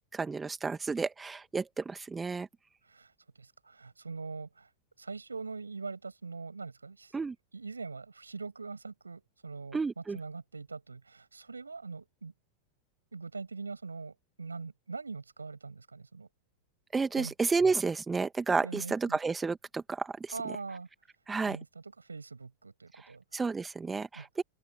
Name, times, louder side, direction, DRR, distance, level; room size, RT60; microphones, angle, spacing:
voice 1, 0.1-2.5 7.1-7.3 9.7-10.2 16.9-20.3 21.3-21.6 23.3-24.4, right 4 dB, 15° right, 1.7 m, -31 dB
voice 2, 2.8-4.7 5.0-7.1 7.5-12.3 13.1-16.3 17.2-17.3 18.6-19.2 20.3-20.9 21.4-23.2 24.1-24.3, right 4 dB, 80° right, 7.4 m, -42 dB
open air
figure-of-eight pair, 90°, 0 cm